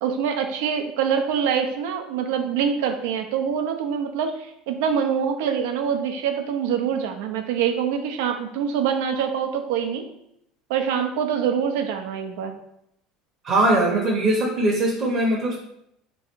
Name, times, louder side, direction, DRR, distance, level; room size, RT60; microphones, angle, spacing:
voice 1, 0.0-10.0 10.7-12.5, right 7 dB, 85° right, 5 dB, 0.7 m, -25 dB
voice 2, 13.4-15.6, right 1 dB, 30° right, -3 dB, 0.8 m, -21 dB
3.6 x 3.1 x 4.4 m, 0.76 s
cardioid pair, 165°, 0 cm